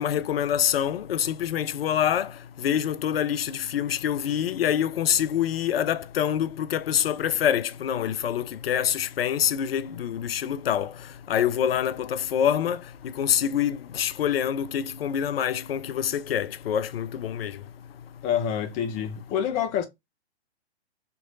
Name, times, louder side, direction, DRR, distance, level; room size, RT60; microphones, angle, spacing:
voice 1, 0.0-2.3 2.6-10.9 11.3-12.8 13.2-17.5, left 9 dB, 60° left, 0.5 m, -26 dB
voice 2, 18.2-19.8, left 9 dB, 20° left, 0.6 m, -27 dB
3.4 x 3.1 x 3.8 m
figure-of-eight pair, 120°, 33 cm